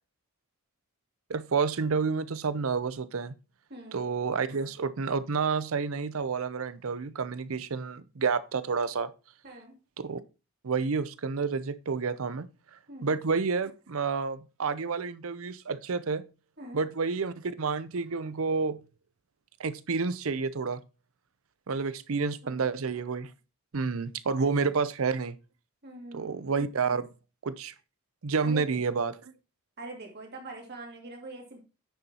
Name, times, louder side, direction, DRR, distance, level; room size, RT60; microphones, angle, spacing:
voice 1, 1.3-3.3 3.9-9.1 10.0-10.2 10.6-12.5 13.0-16.2 16.7-18.8 19.6-20.8 21.7-23.3 23.7-25.4 26.1-27.1 27.4-27.7 28.2-29.1, right 5 dB, 65° right, 0.6 m, -29 dB
voice 2, 3.7-4.0 9.4-9.7 12.9-13.2 16.6-16.8 22.4-22.7 24.4-24.5 25.8-26.5 28.4-28.8 29.8-31.6, right 2 dB, 50° right, 2.5 m, -43 dB
9.4 x 6.8 x 2.9 m
head